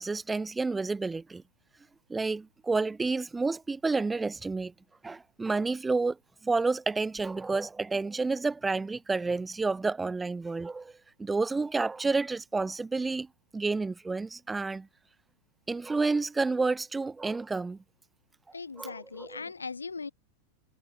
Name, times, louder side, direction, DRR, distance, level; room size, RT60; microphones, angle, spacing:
voice 1, 0.0-1.4 2.1-4.7 5.0-6.2 6.4-10.9 11.2-13.3 13.5-14.9 15.7-17.8 18.8-19.4, right 3 dB, 10° right, 0.3 m, -30 dB
voice 2, 18.5-20.1, left 4 dB, 75° left, 0.7 m, -39 dB
figure-of-eight pair, 90°, 0 cm